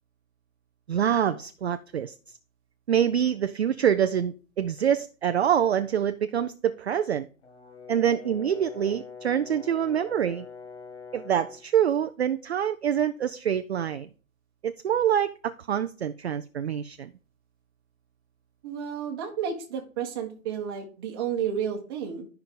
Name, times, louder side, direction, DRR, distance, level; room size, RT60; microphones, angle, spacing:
voice 1, 0.9-2.1 2.9-7.3 7.9-10.5 11.1-14.1 14.6-17.1, right 9 dB, 50° right, 10 dB, 0.4 m, -25 dB
Brass instrument, 7.4-11.7, left 5 dB, 55° left, 1.5 m, -44 dB
voice 2, 18.6-22.3, right 8 dB, 15° right, 1 dB, 1.3 m, -31 dB
11.5 x 5.7 x 3.7 m, 0.38 s
hypercardioid pair, 175°, 42 cm